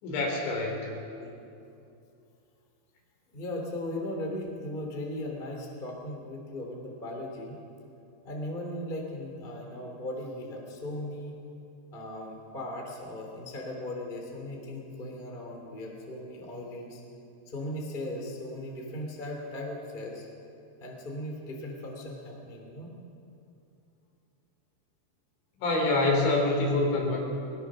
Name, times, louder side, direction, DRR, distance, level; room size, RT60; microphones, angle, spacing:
voice 1, 0.0-0.8 25.6-27.2, left 2 dB, 70° left, -1 dB, 6.0 m, -26 dB
voice 2, 3.3-7.6 8.2-11.3 11.9-17.0 17.5-20.3 20.8-22.9, left 1 dB, 15° left, 0 dB, 2.1 m, -38 dB
21.5 x 20.0 x 6.3 m, 2.6 s
omnidirectional pair, 5.4 m